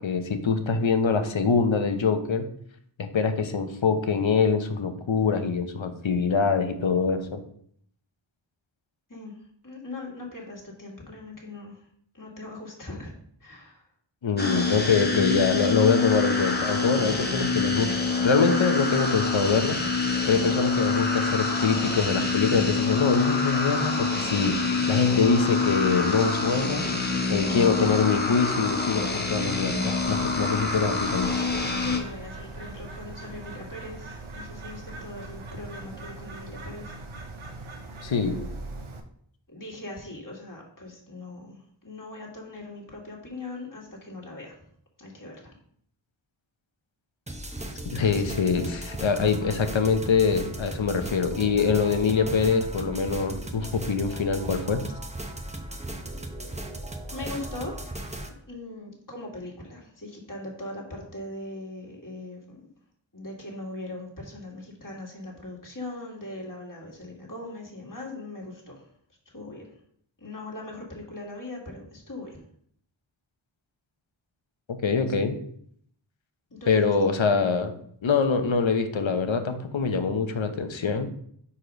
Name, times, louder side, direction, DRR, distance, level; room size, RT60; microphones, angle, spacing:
voice 1, 0.0-2.5 3.0-7.4 14.2-17.9 18.2-26.8 27.3-31.4 38.0-38.4 47.9-54.9 74.7-75.4 76.7-77.7 78.0-81.1, left 5 dB, 70° left, 7 dB, 0.9 m, -24 dB
voice 2, 9.1-11.9 12.1-13.1 13.4-13.9 31.8-37.0 39.5-44.6 45.0-45.5 57.1-58.1 58.5-62.6 63.1-68.9 69.3-69.7 70.2-72.4 76.5-77.1, left 2 dB, 40° left, -2 dB, 2.0 m, -40 dB
sound 1, 14.4-32.0, left 4 dB, 20° left, 1.0 m, -26 dB
Bird, 30.0-39.0, right 2 dB, 80° right, 0.8 m, -40 dB
sound 2, 47.3-58.3, right 1 dB, 15° right, 0.8 m, -37 dB
4.8 x 4.2 x 5.2 m, 0.65 s
wide cardioid pair, 55°, 48 cm